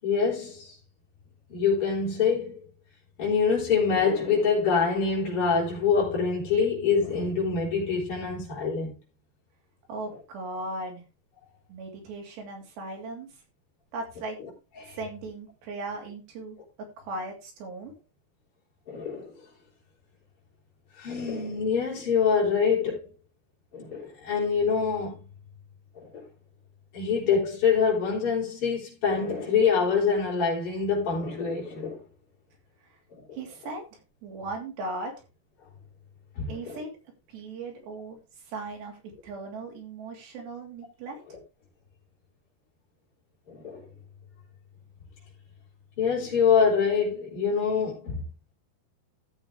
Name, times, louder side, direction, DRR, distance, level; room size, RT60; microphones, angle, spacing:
voice 1, 0.0-0.7 1.5-2.6 3.2-8.9 14.8-15.0 18.9-19.3 21.0-23.0 23.7-25.2 26.0-26.2 26.9-32.0 33.1-33.2 36.4-36.8 43.5-43.8 46.0-48.2, left 6 dB, 30° left, 4.8 m, -25 dB
voice 2, 9.9-11.0 11.7-13.3 13.9-14.4 14.9-17.9 33.3-33.9 34.2-35.1 36.5-36.9 37.3-38.2 38.5-39.0 39.2-41.2, right 2 dB, 80° right, 5.1 m, -37 dB
14.0 x 7.3 x 3.4 m
omnidirectional pair, 4.9 m